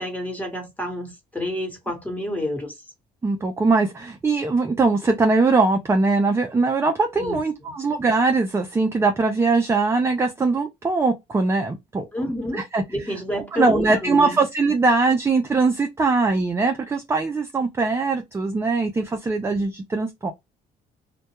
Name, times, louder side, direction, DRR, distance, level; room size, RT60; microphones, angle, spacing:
voice 1, 0.0-2.8 7.2-7.4 7.7-7.8 12.1-12.6 12.9-14.4, left 1 dB, 10° left, 1.2 m, -29 dB
voice 2, 3.2-12.1 12.5-12.8 13.1-13.2 13.5-20.3, right 3 dB, 15° right, 0.4 m, -21 dB
2.2 x 2.2 x 2.8 m
cardioid pair, 110°, 17 cm